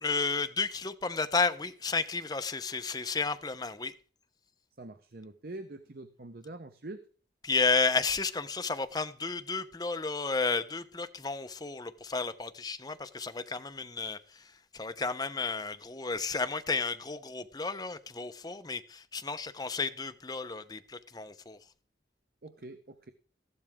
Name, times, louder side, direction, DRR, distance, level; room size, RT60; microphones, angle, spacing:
voice 1, 0.0-3.9 7.4-14.2 14.7-21.6, left 4 dB, 20° left, 0.8 m, -32 dB
voice 2, 4.8-7.0 22.4-23.1, right 2 dB, 55° right, 0.9 m, -44 dB
15.0 x 12.0 x 3.7 m
head